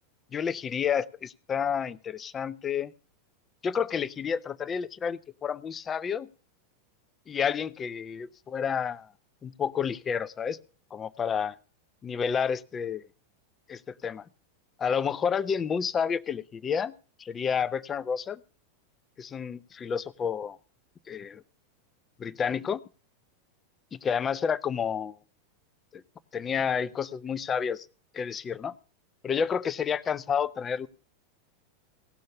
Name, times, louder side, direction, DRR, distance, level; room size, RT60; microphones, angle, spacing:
voice 1, 0.3-2.9 3.6-6.3 7.3-9.1 9.4-10.6 10.9-11.6 12.0-13.0 13.7-14.2 14.8-16.9 17.2-18.4 19.2-20.5 21.1-21.4 22.2-22.8 23.9-25.1 25.9-26.0 26.3-27.9 28.1-28.7 29.2-30.9, left 7 dB, 25° left, 15 dB, 0.7 m, -30 dB
17.0 x 6.5 x 7.0 m, 0.38 s
figure-of-eight pair, 90°, 0 cm